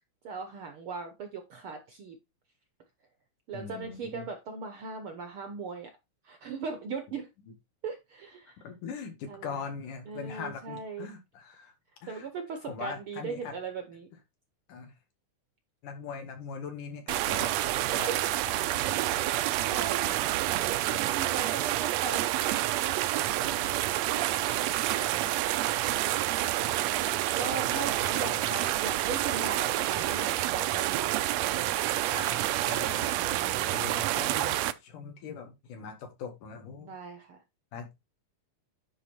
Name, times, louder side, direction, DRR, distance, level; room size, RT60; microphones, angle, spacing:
voice 1, 0.2-2.2 3.5-5.9 6.2-7.3 7.8-8.6 9.3-9.7 10.1-11.1 12.1-14.1 18.9-20.6 21.0-23.0 23.2-23.7 26.5-32.0 32.9-33.7 36.8-37.4, right 5 dB, 65° right, 1.3 m, -39 dB
voice 2, 3.5-4.3 8.6-11.7 12.0-12.3 12.7-13.6 14.7-14.9 15.8-17.5 18.0-18.7 19.0-19.1 20.6-21.0 21.4-21.5 23.5-23.9 25.0-25.4 26.8-28.5 32.1-36.9 37.7-38.0, left 6 dB, 90° left, 3.3 m, -42 dB
sound 1, 17.1-34.7, right 14 dB, 80° right, 1.6 m, -28 dB
9.9 x 3.9 x 4.3 m
omnidirectional pair, 3.5 m